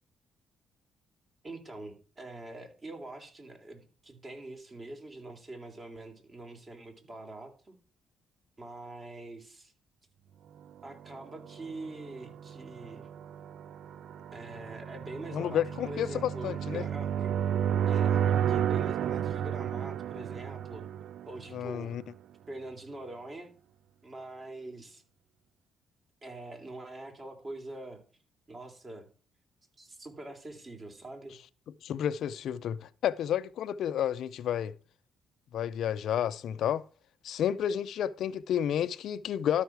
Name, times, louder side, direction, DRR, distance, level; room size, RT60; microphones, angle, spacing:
voice 1, 1.4-7.8 8.6-9.7 10.8-13.1 14.3-17.3 17.9-20.8 21.3-22.0 22.5-23.5 24.0-25.0 26.2-28.0 28.5-29.1 29.8-31.4, right 2 dB, 35° right, 3.1 m, -44 dB
sound 1, 11.2-22.0, right 9 dB, 70° right, 0.3 m, -32 dB
voice 2, 15.3-16.9 21.5-22.0 31.8-34.7 35.5-36.8 37.2-39.6, left 10 dB, 75° left, 0.5 m, -31 dB
12.5 x 5.7 x 4.6 m
cardioid pair, 90°, 0 cm